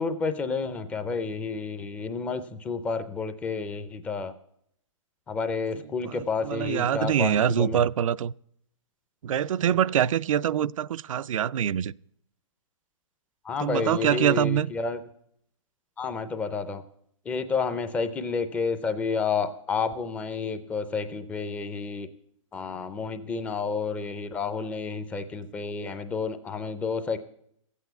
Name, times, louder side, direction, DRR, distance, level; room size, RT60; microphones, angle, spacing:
voice 1, 0.0-4.3 5.3-7.8 13.4-15.0 16.0-16.8 17.3-22.1 22.5-27.2, left 5 dB, 10° left, 0.4 m, -30 dB
voice 2, 6.0-8.3 9.2-11.9 13.6-14.7, right 9 dB, 80° right, 0.4 m, -24 dB
13.5 x 8.3 x 8.0 m
hypercardioid pair, 165°, 17 cm